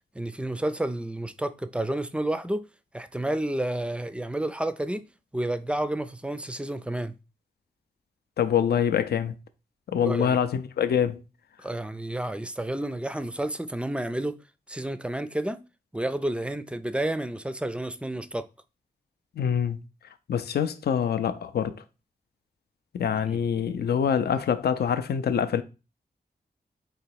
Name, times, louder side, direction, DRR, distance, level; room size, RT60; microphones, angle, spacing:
voice 1, 0.1-2.7 2.9-5.0 5.3-7.1 10.0-10.4 11.6-14.4 14.7-15.6 15.9-18.5 23.3-23.4, right 1 dB, 5° right, 0.4 m, -30 dB
voice 2, 8.4-9.4 9.9-11.2 19.4-19.8 20.3-21.8 22.9-25.6, left 8 dB, 70° left, 0.4 m, -25 dB
4.0 x 2.9 x 4.6 m
cardioid pair, 60°, 17 cm